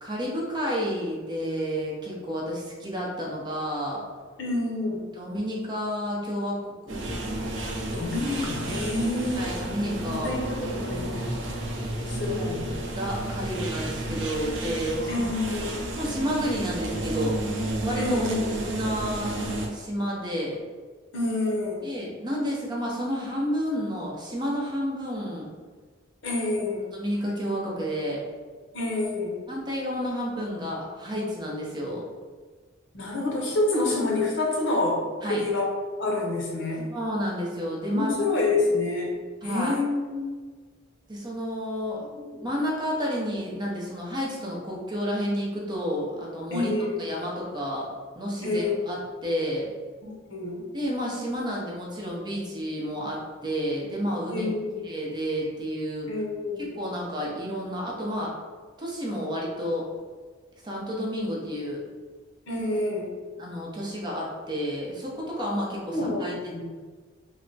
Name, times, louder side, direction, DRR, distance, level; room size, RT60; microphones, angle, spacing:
voice 1, 0.0-4.0 5.2-6.6 6.9-7.2 9.4-10.4 12.3-12.6 12.9-15.3 15.9-17.4 17.8-18.3 18.7-19.3 19.7-20.6 21.8-25.5 26.9-28.2 29.5-32.1 35.2-35.4 36.9-38.1 38.4-38.5 39.4-39.7 41.1-42.1 42.4-46.7 47.0-47.9 48.2-49.7 50.7-54.5 54.8-56.1 56.6-58.3 58.8-59.9 60.6-61.8 63.4-66.3, equal, 25° right, -4 dB, 0.7 m, -30 dB
voice 2, 4.4-5.0 7.9-9.5 10.0-11.2 12.1-12.6 15.1-15.7 18.0-18.5 21.1-21.8 26.2-26.9 28.7-29.4 32.9-35.7 36.0-36.9 37.9-39.1 39.4-40.3 42.2-42.5 46.5-47.0 48.4-48.7 50.0-50.6 54.3-54.8 56.1-56.7 62.5-63.1 65.9-66.6, left 2 dB, 70° left, -2 dB, 0.8 m, -28 dB
sound 1, 6.9-19.7, right 1 dB, 65° right, 0.5 m, -31 dB
3.3 x 2.1 x 3.9 m, 1.5 s
head